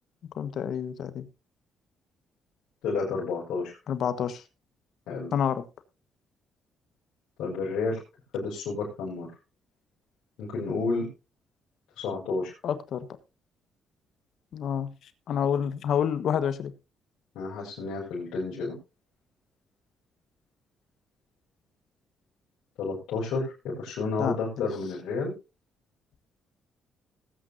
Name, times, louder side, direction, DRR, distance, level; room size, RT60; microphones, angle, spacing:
voice 1, 0.4-1.3 3.9-4.4 5.3-5.6 12.6-13.1 14.5-14.9 15.3-16.7 24.2-24.4, left 8 dB, 70° left, 12 dB, 1.3 m, -28 dB
voice 2, 2.8-3.7 5.1-5.3 7.4-8.0 8.3-9.3 10.4-11.1 12.0-12.5 17.4-18.8 22.8-25.3, left 4 dB, 85° left, -6 dB, 5.3 m, -30 dB
19.5 x 9.1 x 2.7 m, 0.28 s
cardioid pair, 90°, 0 cm